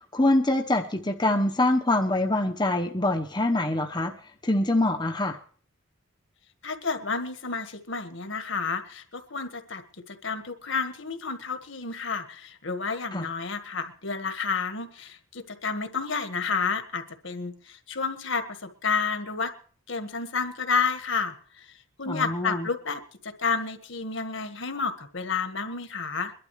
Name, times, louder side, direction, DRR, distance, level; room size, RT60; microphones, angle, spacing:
voice 1, 0.1-4.1 4.4-5.4 13.1-13.2 22.1-22.7, left 1 dB, 20° left, 2 dB, 1.0 m, -24 dB
voice 2, 6.6-19.5 19.9-21.7 22.0-26.3, left 5 dB, 60° left, 8 dB, 1.6 m, -30 dB
23.0 x 12.0 x 3.2 m, 0.43 s
head